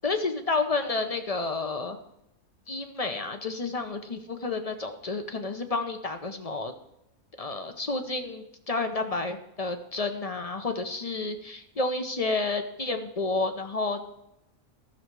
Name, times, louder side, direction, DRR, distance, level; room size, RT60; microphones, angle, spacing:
voice 1, 0.0-2.0 2.7-6.7 7.4-14.0, left 3 dB, 40° left, 7 dB, 0.6 m, -30 dB
14.0 x 6.5 x 4.6 m, 0.83 s
omnidirectional pair, 1.5 m